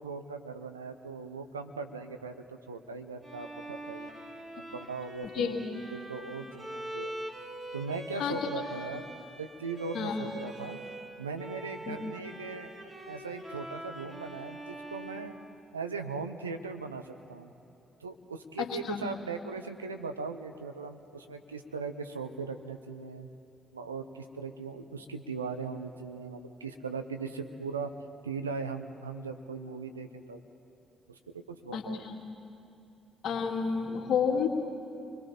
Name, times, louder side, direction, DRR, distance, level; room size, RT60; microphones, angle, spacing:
voice 1, 0.0-4.1 4.6-5.6 5.9-7.1 7.7-9.0 9.4-10.8 11.2-15.3 15.7-17.5 18.0-23.3 23.7-27.9 28.2-30.4 31.1-32.1, right 4 dB, 85° right, 7 dB, 0.8 m, -39 dB
Bowed string instrument, 3.2-11.1 11.4-16.2, right 1 dB, 20° right, 3.6 m, -44 dB
voice 2, 18.6-19.0 31.7-32.2 33.2-34.5, left 6 dB, 55° left, 2 dB, 2.3 m, -30 dB
30.0 x 22.0 x 4.3 m, 2.7 s
figure-of-eight pair, 45°, 0 cm